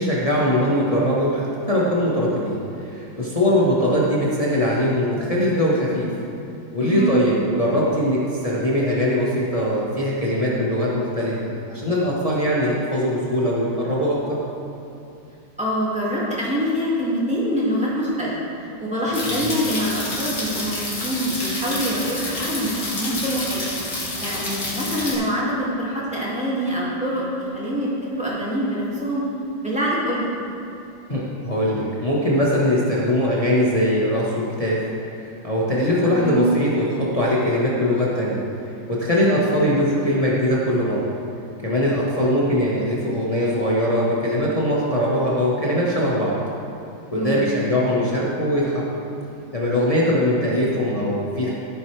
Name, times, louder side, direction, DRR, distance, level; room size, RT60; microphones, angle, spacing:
voice 1, 0.0-6.1 6.7-14.4 19.3-19.5 31.1-34.8 35.1-38.4 38.9-41.1 41.6-46.3 47.1-49.0 49.5-51.5, equal, 20° left, -6 dB, 1.2 m, -21 dB
voice 2, 6.8-7.2 15.6-18.3 18.8-23.6 24.2-27.9 28.2-29.2 29.6-30.3 36.1-36.5 39.2-39.5 47.2-47.5, equal, 5° right, -7 dB, 2.1 m, -25 dB
sound 1, 19.1-25.1, left 2 dB, 45° left, 2.4 m, -28 dB
14.5 x 8.1 x 3.4 m, 2.7 s
omnidirectional pair, 2.2 m